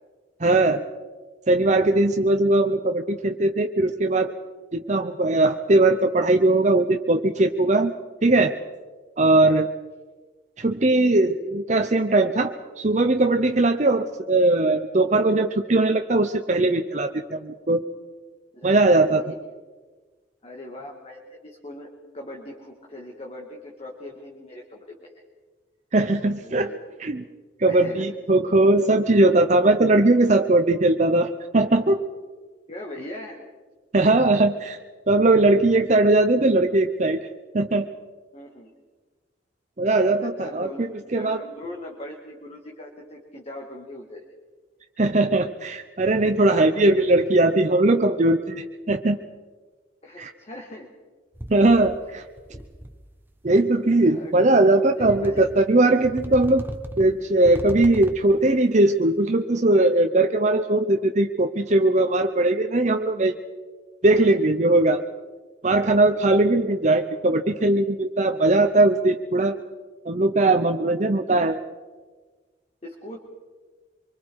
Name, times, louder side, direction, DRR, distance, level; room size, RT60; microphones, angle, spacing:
voice 1, 0.4-0.9 1.5-4.3 4.7-7.9 8.2-8.6 9.2-9.7 10.6-17.8 18.6-19.3 25.9-26.7 27.0-27.2 27.6-32.0 33.9-34.8 35.1-37.2 37.5-37.9 39.8-40.9 41.1-41.4 45.0-49.2 50.2-50.3 51.5-52.2 53.4-56.6 57.0-63.3 64.0-65.0 65.6-69.6 70.1-71.6, right 2 dB, 40° right, 6 dB, 0.8 m, -20 dB
voice 2, 19.0-19.4 20.4-21.9 22.1-25.1 26.4-26.8 27.7-28.2 32.7-33.4 38.3-38.7 40.2-40.9 41.1-44.3 46.5-47.4 50.0-50.9 52.5-52.7 53.9-54.3 54.7-55.5 70.8-70.9 72.8-73.2, left 1 dB, 35° left, 0 dB, 2.4 m, -40 dB
sound 1, 51.3-52.1 52.4-53.1 54.0-54.1 55.0-55.7 56.0-58.4, right 1 dB, 10° right, 1.2 m, -37 dB
25.5 x 24.5 x 4.8 m, 1.4 s
head